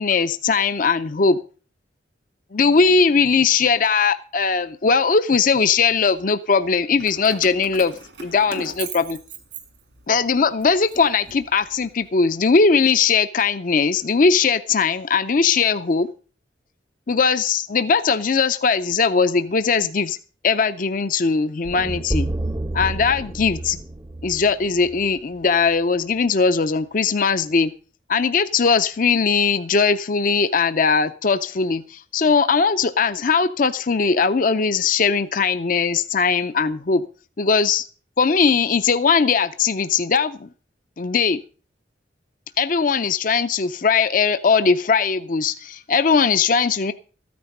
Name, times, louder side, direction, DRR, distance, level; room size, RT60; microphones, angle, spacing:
voice 1, 0.0-1.4 2.5-7.9 8.2-9.2 10.1-16.1 17.1-20.2 20.4-22.3 22.7-23.8 24.2-27.7 28.1-37.0 37.4-37.9 38.2-40.5 41.0-41.4 42.6-46.9, left 5 dB, 45° left, 0.5 m, -19 dB
Keys jangling, 7.0-10.2 10.6-11.9, right 5 dB, 75° right, 2.3 m, -38 dB
sound 1, 21.7-25.8, right 1 dB, 20° right, 0.5 m, -29 dB
13.5 x 9.5 x 5.3 m
head